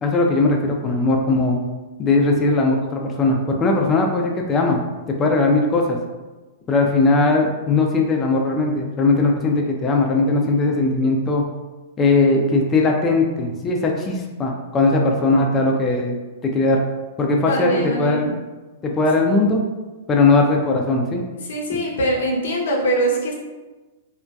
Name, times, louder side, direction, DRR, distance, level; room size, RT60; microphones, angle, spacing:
voice 1, 0.0-1.6 2.0-4.8 5.2-6.0 6.7-11.4 12.0-16.2 16.4-16.8 17.2-18.4 18.8-19.6 20.1-21.2, left 3 dB, 20° left, 1 dB, 0.3 m, -19 dB
voice 2, 17.5-18.3 21.5-23.3, right 1 dB, 80° left, -2 dB, 0.6 m, -22 dB
2.6 x 2.1 x 2.3 m, 1.2 s
hypercardioid pair, 140°, 0 cm